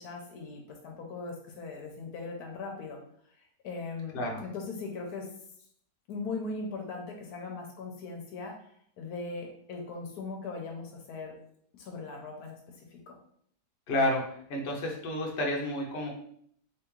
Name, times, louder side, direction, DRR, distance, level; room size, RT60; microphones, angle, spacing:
voice 1, 0.0-3.0 3.6-5.3 6.1-8.5 9.0-11.4 11.7-12.6 13.1-13.2, left 3 dB, 75° left, 2 dB, 1.1 m, -39 dB
voice 2, 13.9-16.1, left 1 dB, 50° left, -1 dB, 0.8 m, -30 dB
3.4 x 3.1 x 3.1 m, 0.64 s
omnidirectional pair, 1.7 m